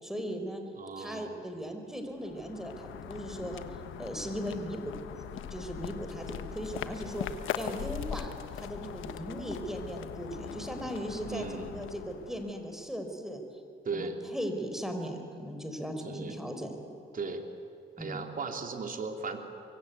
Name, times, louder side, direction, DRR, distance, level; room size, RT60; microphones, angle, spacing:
voice 1, 0.0-0.6 1.0-3.6 4.0-7.3 7.5-13.4 13.9-16.7 18.0-18.2, equal, ahead, 5 dB, 4.4 m, -38 dB
voice 2, 0.7-1.3 11.2-11.8 13.8-14.1 16.0-16.4 17.1-17.4 18.0-19.4, right 4 dB, 45° right, 4 dB, 3.2 m, -37 dB
sound 1, 2.1-12.8, left 9 dB, 80° left, 1.3 m, -41 dB
24.0 x 23.0 x 9.4 m, 2.7 s
cardioid pair, 90°, 20 cm